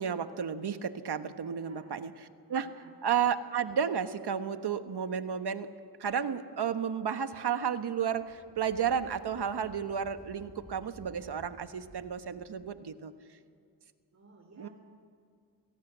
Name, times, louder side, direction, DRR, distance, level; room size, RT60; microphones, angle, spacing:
voice 1, 0.0-2.7 3.0-5.7 6.0-13.1 14.6-14.7, right 7 dB, 65° right, 9 dB, 1.4 m, -32 dB
voice 2, 1.5-2.0 2.6-3.0 14.1-14.7, right 2 dB, 40° right, 1 dB, 3.5 m, -56 dB
sound 1, 8.0-12.8, left 1 dB, 20° left, 3.2 m, -56 dB
26.5 x 18.0 x 8.1 m, 2.3 s
cardioid pair, 75°, 42 cm